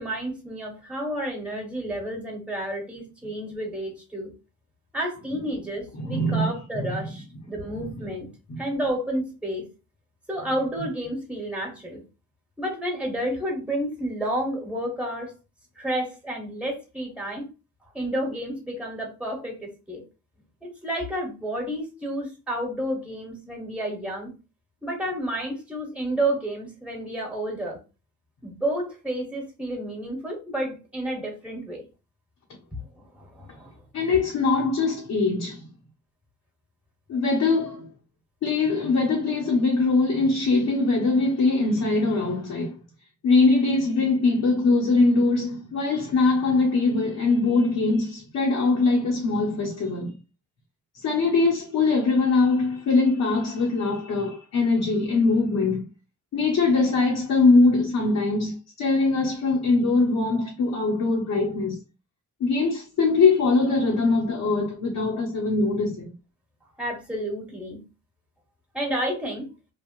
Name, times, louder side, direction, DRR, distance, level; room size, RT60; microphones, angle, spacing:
voice 1, 0.0-4.3 4.9-8.3 8.6-9.7 10.3-12.0 12.6-15.3 15.8-17.5 17.9-20.0 20.6-24.3 24.8-27.8 28.4-31.8 32.9-33.7 66.8-67.8 68.7-69.5, right 1 dB, 5° right, 1.3 m, -30 dB
voice 2, 6.0-6.5 6.7-7.0 8.5-8.6 33.9-35.6 37.1-37.9 38.4-42.7 43.2-50.1 51.0-55.9 56.3-61.8 62.4-66.1, left 3 dB, 75° left, 1.2 m, -22 dB
3.3 x 2.4 x 2.6 m
wide cardioid pair, 130°, 31 cm